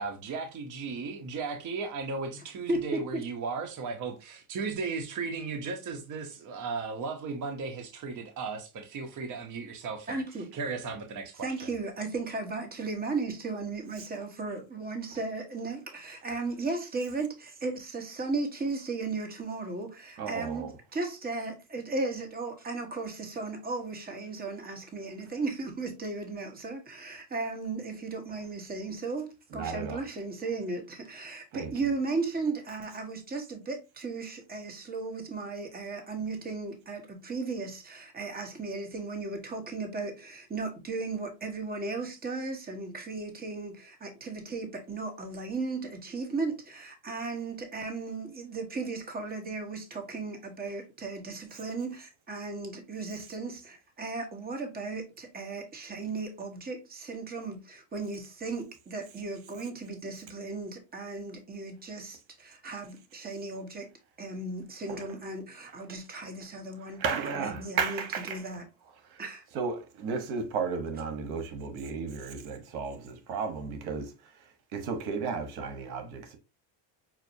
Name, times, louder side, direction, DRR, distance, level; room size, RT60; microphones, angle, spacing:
voice 1, 0.0-10.2 10.5-11.5, right 4 dB, 40° right, 0.9 m, -36 dB
voice 2, 2.7-3.2 10.1-10.5 11.4-63.9 64.2-67.0 67.4-68.0 68.3-68.6 69.2-69.4, right 3 dB, 20° right, 1.1 m, -36 dB
voice 3, 20.2-20.7 29.5-30.0 31.5-31.7 64.9-65.1 66.2-66.3 66.9-68.4 69.0-69.2 69.5-76.4, right 5 dB, 75° right, 1.2 m, -34 dB
5.8 x 2.7 x 2.7 m
supercardioid pair, 105°, 48 cm